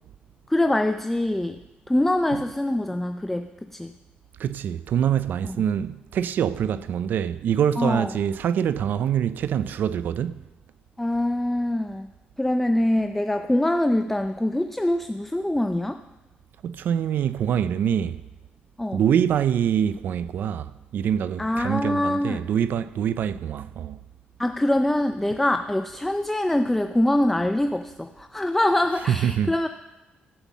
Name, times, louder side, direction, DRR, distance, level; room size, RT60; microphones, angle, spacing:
voice 1, 0.5-1.6 1.9-3.9 5.4-5.6 7.8-8.1 11.0-12.1 12.4-16.0 18.8-19.0 21.4-22.4 24.4-29.7, left 1 dB, 5° left, 0.4 m, -24 dB
voice 2, 4.4-10.4 16.6-18.2 18.9-24.0 29.1-29.5, right 9 dB, 65° right, 0.4 m, -25 dB
15.5 x 5.5 x 7.2 m
cardioid pair, 120°, 3 cm